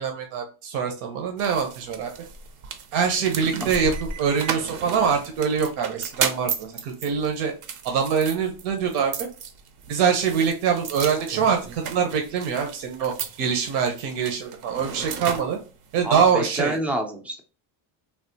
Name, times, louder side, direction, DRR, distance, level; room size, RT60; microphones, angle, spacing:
voice 1, 0.0-2.1 2.9-7.5 7.8-9.3 9.9-15.6 15.9-16.8, right 6 dB, 80° right, 3 dB, 0.8 m, -24 dB
sound 1, 1.4-16.3, right 6 dB, 50° right, 0.6 m, -35 dB
voice 2, 16.0-17.4, equal, 5° right, 3 dB, 0.3 m, -27 dB
3.4 x 2.4 x 2.7 m, 0.35 s
cardioid pair, 155°, 40 cm